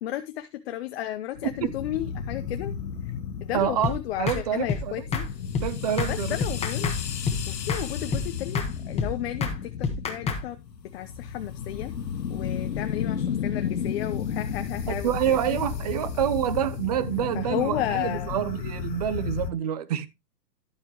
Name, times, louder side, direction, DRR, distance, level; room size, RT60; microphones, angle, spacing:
voice 1, 0.0-2.7 3.4-5.3 6.1-6.9 7.5-10.6 10.9-11.9 12.3-15.6 17.3-18.3, left 13 dB, 40° left, 0.8 m, -33 dB
sound 1, 1.4-19.5, left 7 dB, 80° left, 1.6 m, -33 dB
voice 2, 3.5-5.0 5.6-6.4 14.9-20.1, right 10 dB, 25° right, 0.5 m, -27 dB
sound 2, 3.8-4.0 4.3-4.4 4.7-4.8 5.1-5.3 5.5-5.7 6.0-6.1 6.4-7.0 7.3-7.4 7.7-7.8 8.1-8.3 8.5-8.7 9.0-9.1 9.4-9.6 9.8-10.4, left 5 dB, 10° left, 1.3 m, -27 dB
11.5 x 7.6 x 3.0 m
hypercardioid pair, 145°, 49 cm